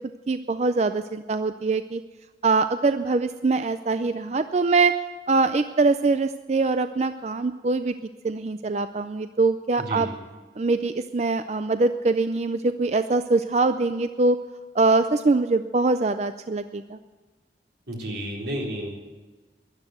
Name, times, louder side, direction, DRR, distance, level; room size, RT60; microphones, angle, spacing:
voice 1, 0.3-2.0 2.4-4.9 5.3-7.9 8.2-10.1 10.6-14.4 14.7-17.0, right 3 dB, 40° right, 10 dB, 0.4 m, -23 dB
voice 2, 9.8-10.1 17.9-18.9, equal, 85° right, -1 dB, 4.0 m, -31 dB
12.5 x 11.5 x 7.9 m, 1.3 s
head